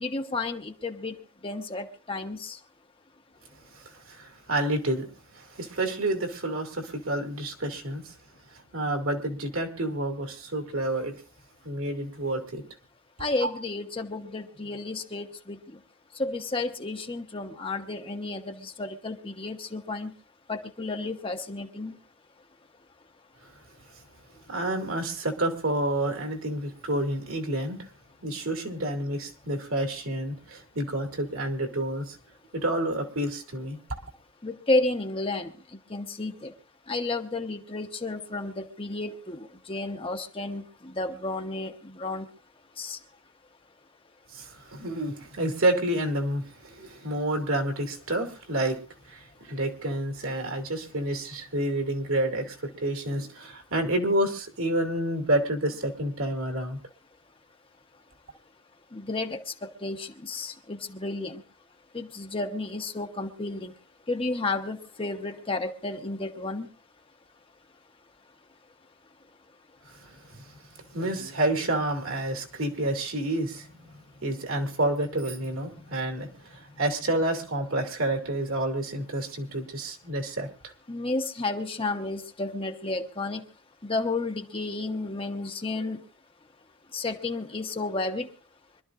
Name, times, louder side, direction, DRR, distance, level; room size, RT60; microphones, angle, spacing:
voice 1, 0.0-2.6 13.2-15.6 16.2-20.1 20.5-21.9 34.4-35.5 35.9-36.5 36.9-40.6 41.0-42.3 42.8-43.0 58.9-61.4 61.9-63.7 64.1-66.7 80.9-83.4 83.8-86.0 86.9-88.3, left 2 dB, 25° left, 5 dB, 1.0 m, -32 dB
voice 2, 3.7-5.1 5.3-8.1 8.5-11.2 11.6-12.6 13.4-13.5 24.3-27.9 28.2-32.2 32.5-34.0 44.3-56.8 69.9-70.6 70.9-73.9 74.2-80.7, right 1 dB, 65° right, 3 dB, 2.6 m, -29 dB
25.5 x 12.5 x 2.5 m, 0.35 s
head